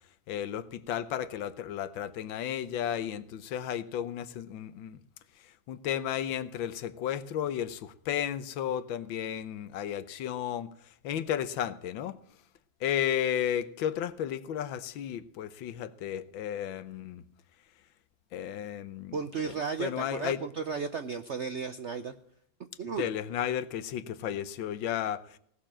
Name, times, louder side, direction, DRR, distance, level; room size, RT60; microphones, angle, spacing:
voice 1, 0.3-5.0 5.7-10.7 11.0-12.2 12.8-17.2 18.3-19.5 19.8-20.4 23.0-25.4, left 10 dB, 90° left, 1.6 m, -33 dB
voice 2, 19.1-22.1 22.8-23.1, right 5 dB, 70° right, 0.6 m, -34 dB
18.0 x 6.9 x 7.4 m
omnidirectional pair, 2.1 m